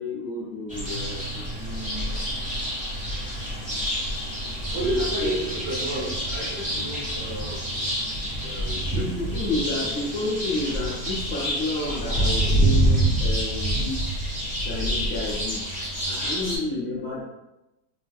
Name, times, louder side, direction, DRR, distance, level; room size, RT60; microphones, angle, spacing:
voice 1, 0.0-1.5 5.2-5.3 8.9-14.1 14.6-15.7 16.1-17.2, left 2 dB, 60° left, -6 dB, 0.7 m, -30 dB
sound 1, 0.7-16.6, right 1 dB, 5° right, 0.6 m, -27 dB
voice 2, 1.5-2.1 4.7-7.6 8.4-9.4, right 1 dB, 85° right, -1 dB, 1.4 m, -32 dB
4.0 x 2.5 x 2.2 m, 0.96 s
omnidirectional pair, 1.8 m